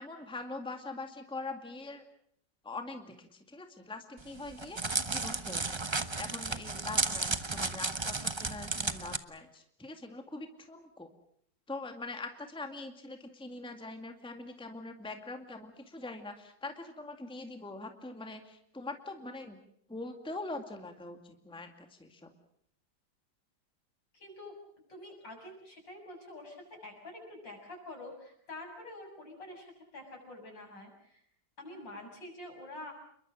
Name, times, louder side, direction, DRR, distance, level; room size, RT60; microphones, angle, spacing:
voice 1, 0.0-2.0 2.6-5.8 6.2-11.1 11.7-19.6 19.9-22.3, left 2 dB, 5° left, 5 dB, 2.0 m, -43 dB
Crackle, 4.2-9.2, right 3 dB, 20° right, 0.7 m, -33 dB
voice 2, 24.1-24.6 24.9-31.2 31.6-32.9, left 1 dB, 75° left, 2 dB, 7.9 m, -47 dB
29.0 x 22.5 x 6.3 m, 0.68 s
omnidirectional pair, 2.0 m